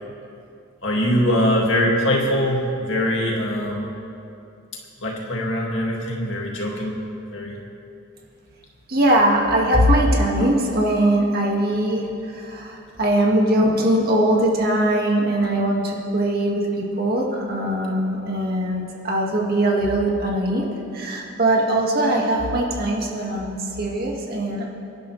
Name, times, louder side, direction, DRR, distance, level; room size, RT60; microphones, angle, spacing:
voice 1, 0.8-3.9 5.0-6.9 7.3-7.6, equal, 60° left, -2 dB, 2.4 m, -22 dB
voice 2, 8.9-20.7 20.9-24.6, right 1 dB, 45° right, -2 dB, 2.1 m, -21 dB
24.5 x 11.0 x 3.4 m, 2.6 s
head